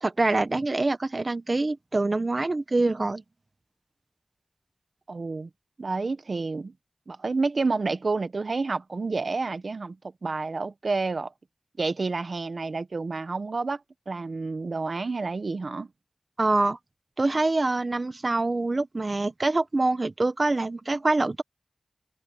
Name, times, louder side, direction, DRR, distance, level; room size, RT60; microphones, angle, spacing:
voice 1, 0.0-3.2 16.4-16.8 17.2-21.4, right 2 dB, 55° right, 1.2 m, -25 dB
voice 2, 5.1-5.5 5.8-6.7 7.1-10.0 10.2-11.3 11.8-15.9, right 3 dB, 75° right, 1.1 m, -29 dB
open air
cardioid pair, 40°, 0 cm